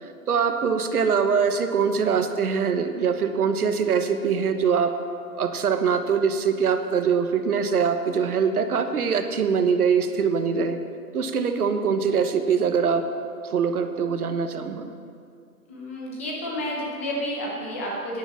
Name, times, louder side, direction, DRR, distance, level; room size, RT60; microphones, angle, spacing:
voice 1, 0.0-4.9 5.4-10.8 11.1-13.0 13.4-14.9, right 6 dB, 65° right, 7 dB, 1.3 m, -23 dB
voice 2, 15.7-18.2, equal, 10° left, -2 dB, 0.7 m, -30 dB
11.0 x 10.5 x 7.5 m, 2.3 s
hypercardioid pair, 165°, 47 cm